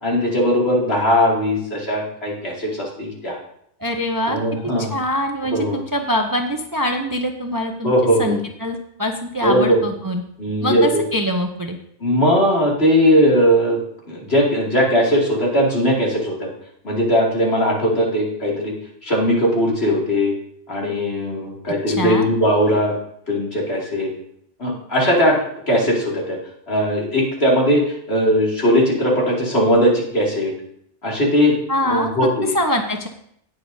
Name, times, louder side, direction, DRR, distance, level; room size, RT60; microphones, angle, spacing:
voice 1, 0.0-3.4 4.3-4.9 5.5-5.8 7.8-8.4 9.4-9.8 10.4-11.0 12.0-13.8 14.1-16.5 16.8-18.7 19.0-20.4 20.7-22.9 23.3-24.1 24.6-25.4 25.7-26.4 26.7-30.5 31.0-31.5 31.8-32.5, equal, 65° left, -4 dB, 2.8 m, -19 dB
voice 2, 3.8-4.4 4.8-7.9 8.2-10.2 10.6-11.8 21.9-22.3 31.7-32.1 32.5-33.1, equal, 25° right, 4 dB, 0.6 m, -23 dB
18.5 x 6.5 x 2.7 m, 0.69 s
omnidirectional pair, 1.1 m